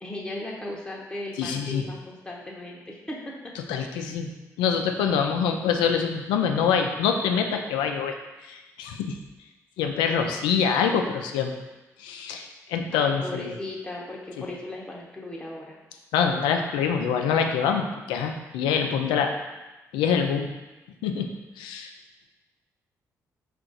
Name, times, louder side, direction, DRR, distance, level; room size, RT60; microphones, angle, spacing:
voice 1, 0.0-3.5 12.9-15.8, left 1 dB, 10° left, -3 dB, 0.8 m, -37 dB
voice 2, 1.4-1.8 3.7-4.3 4.6-8.1 8.4-9.2 9.8-11.5 12.0-13.5 14.4-14.5 16.1-19.3 19.9-20.5 21.0-21.9, left 6 dB, 85° left, 4 dB, 0.4 m, -25 dB
4.5 x 2.5 x 3.8 m, 1.1 s
hypercardioid pair, 45°, 8 cm